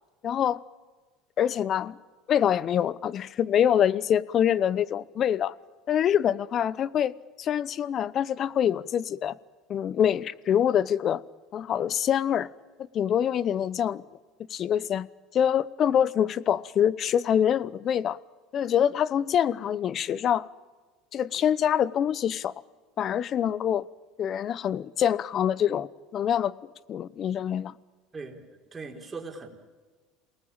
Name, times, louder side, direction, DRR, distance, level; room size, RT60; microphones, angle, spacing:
voice 1, 0.2-0.6 1.4-2.0 2.3-5.5 5.9-9.3 9.7-11.2 11.5-12.5 12.9-14.0 14.5-15.1 15.3-18.2 18.5-20.5 21.1-22.5 23.0-23.9 24.2-26.5 26.9-27.7, left 9 dB, 45° left, 0.9 m, -25 dB
voice 2, 28.7-29.5, right 4 dB, 20° right, 4.4 m, -39 dB
28.0 x 19.5 x 8.8 m
supercardioid pair, 115°, 0 cm